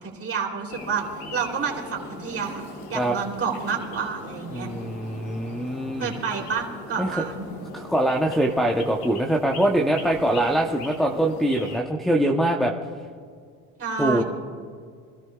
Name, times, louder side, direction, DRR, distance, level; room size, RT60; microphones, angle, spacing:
voice 1, 0.0-1.0 1.3-2.6 2.9-4.7 6.0-7.5 13.8-14.2, right 6 dB, 30° right, 0 dB, 3.3 m, -29 dB
sound 1, 0.7-11.8, left 3 dB, 90° left, 2.8 m, -40 dB
voice 2, 4.5-6.1 7.0-7.1 7.7-12.7 14.0-14.2, right 1 dB, ahead, -2 dB, 0.9 m, -23 dB
27.5 x 13.5 x 2.4 m, 2.1 s
supercardioid pair, 110°, 43 cm